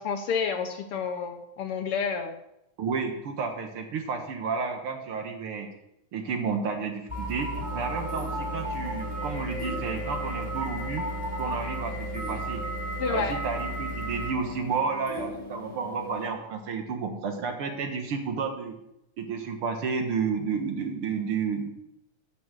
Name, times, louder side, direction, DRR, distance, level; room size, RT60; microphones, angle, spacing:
voice 1, 0.0-2.3 13.0-13.4, left 5 dB, 70° left, 6 dB, 1.4 m, -29 dB
voice 2, 2.8-5.7 6.1-11.1 11.4-12.6 13.1-18.7 19.2-21.7, right 5 dB, 55° right, 4 dB, 1.8 m, -31 dB
sound 1, 7.1-14.3, right 1 dB, 5° right, 2.0 m, -33 dB
sound 2, 7.5-16.3, left 3 dB, 15° left, 0.7 m, -41 dB
11.0 x 6.2 x 6.2 m, 0.84 s
omnidirectional pair, 3.3 m